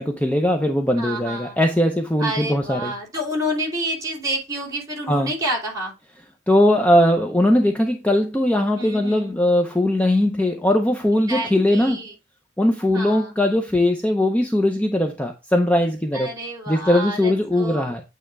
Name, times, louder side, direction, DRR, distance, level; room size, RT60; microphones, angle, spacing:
voice 1, 0.0-2.9 5.1-5.3 6.5-12.0 12.6-16.3 16.7-18.0, left 1 dB, 10° left, 0.7 m, -20 dB
voice 2, 1.0-1.6 2.2-5.9 8.8-9.4 11.3-12.1 12.9-13.3 16.1-17.9, right 1 dB, 20° right, 3.0 m, -29 dB
8.9 x 3.1 x 4.6 m
head